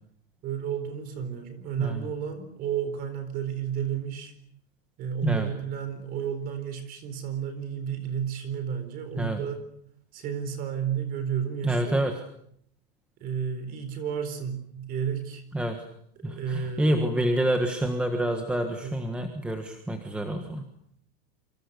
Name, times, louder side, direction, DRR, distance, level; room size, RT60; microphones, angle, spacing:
voice 1, 0.4-4.3 5.0-9.6 10.1-12.0 13.2-15.4 16.2-17.1 18.8-18.9, right 8 dB, 25° right, 10 dB, 4.2 m, -32 dB
voice 2, 11.6-12.1 15.5-15.8 16.2-20.7, right 1 dB, 5° right, 5 dB, 1.4 m, -27 dB
28.0 x 25.5 x 6.8 m, 0.69 s
supercardioid pair, 175°, 33 cm